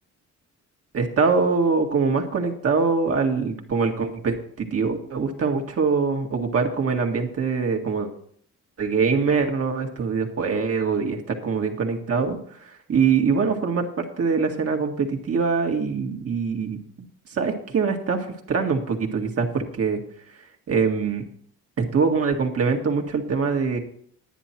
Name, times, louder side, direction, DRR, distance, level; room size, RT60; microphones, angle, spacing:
voice 1, 0.9-8.1 8.8-16.8 17.3-20.0 20.7-21.2 21.8-23.8, right 5 dB, 50° right, 2 dB, 1.9 m, -23 dB
10.0 x 10.0 x 4.5 m, 0.62 s
cardioid pair, 90°, 30 cm